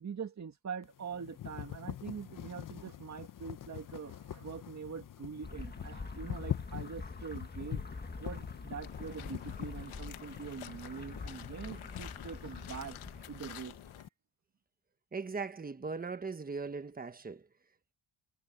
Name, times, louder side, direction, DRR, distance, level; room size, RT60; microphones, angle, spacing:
voice 1, 0.0-7.8 8.2-13.0 13.3-13.7, right 6 dB, 35° right, 2.1 m, -44 dB
sound 1, 0.8-14.1, left 11 dB, 40° left, 0.9 m, -45 dB
sound 2, 5.4-14.0, left 3 dB, 20° left, 1.9 m, -45 dB
sound 3, 8.8-14.0, left 12 dB, 80° left, 1.6 m, -51 dB
voice 2, 15.1-17.4, right 4 dB, 20° right, 1.2 m, -39 dB
cardioid pair, 145°, 48 cm